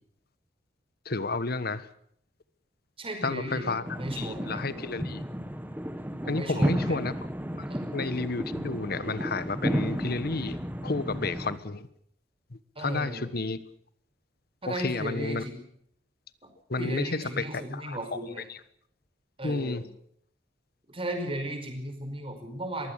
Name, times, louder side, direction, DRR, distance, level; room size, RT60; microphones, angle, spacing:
voice 1, 1.0-1.9 3.2-3.8 4.2-5.2 6.3-7.1 7.5-7.6 7.9-11.9 12.5-13.6 14.7-15.4 16.7-18.6 19.4-19.8, left 3 dB, 55° left, 15 dB, 1.3 m, -31 dB
voice 2, 3.0-4.7 6.2-7.0 7.7-7.8 12.7-13.3 14.6-15.6 16.4-16.5 16.8-18.5 19.4-19.8 20.9-22.9, right 1 dB, 30° right, 5 dB, 5.1 m, -35 dB
sound 1, 3.9-11.6, equal, 10° right, 1.8 m, -33 dB
22.5 x 16.0 x 8.3 m, 0.67 s
head